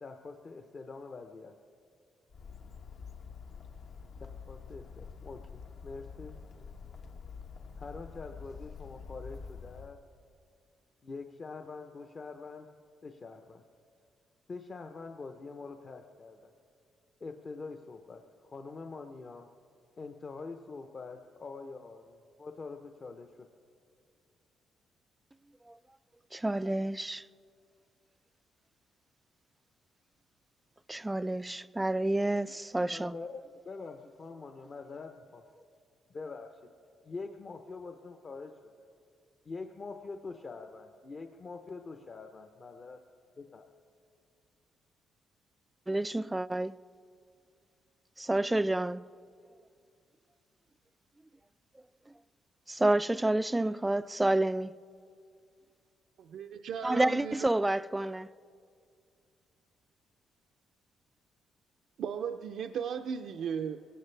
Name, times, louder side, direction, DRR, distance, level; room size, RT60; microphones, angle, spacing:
voice 1, 0.0-1.5 4.5-6.7 7.8-10.0 11.0-12.7 13.0-13.6 14.5-16.5 17.2-19.5 20.0-23.3 32.8-33.4 33.6-35.4 36.1-36.5 37.0-38.7 39.4-43.0 43.4-43.7, left 4 dB, 40° left, 0.8 m, -44 dB
Bird, 2.3-9.9, left 5 dB, 65° left, 1.2 m, -47 dB
voice 2, 26.3-27.2 30.9-33.1 45.9-46.8 48.2-49.0 52.7-54.8 56.8-58.3, right 1 dB, 10° right, 0.3 m, -29 dB
voice 3, 56.3-57.4 62.0-63.8, right 7 dB, 70° right, 0.5 m, -36 dB
21.5 x 18.0 x 3.3 m
cardioid pair, 90°, 0 cm